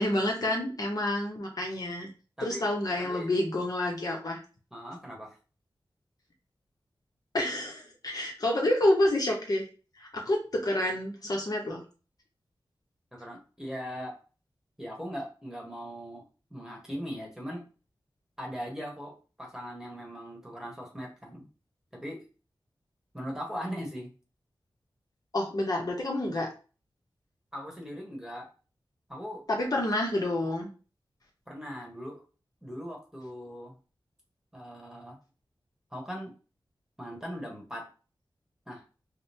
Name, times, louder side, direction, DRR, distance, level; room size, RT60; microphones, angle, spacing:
voice 1, 0.0-2.1 2.4-4.4 7.3-9.6 10.0-11.8 25.3-26.5 29.5-30.7, left 1 dB, 50° left, 0 dB, 0.9 m, -28 dB
voice 2, 3.0-3.3 4.7-5.4 13.1-14.2 14.8-16.2 16.5-17.6 18.4-21.5 21.9-22.2 23.1-24.1 27.5-28.5 29.1-29.4 31.5-32.2 32.6-33.7 34.5-35.2 35.9-36.3 37.0-37.9 38.7-38.8, equal, 5° right, -1 dB, 1.2 m, -39 dB
5.0 x 2.1 x 2.8 m, 0.34 s
wide cardioid pair, 110°, 8 cm